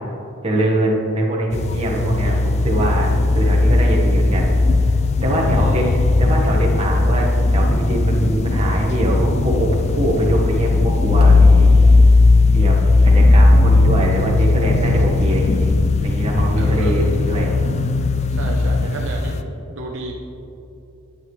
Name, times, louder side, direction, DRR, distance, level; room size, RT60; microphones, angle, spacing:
voice 1, 0.4-4.4 4.8-4.9 5.2-9.7 10.0-11.7 12.5-12.8 13.0-17.5, right 1 dB, 25° right, -2 dB, 1.4 m, -22 dB
sound 1, 1.5-19.4, left 3 dB, 30° left, 0.3 m, -16 dB
voice 2, 5.4-6.0 16.6-17.1 18.3-20.1, right 2 dB, 60° right, -1 dB, 0.8 m, -32 dB
11.5 x 9.1 x 3.2 m, 2.9 s
head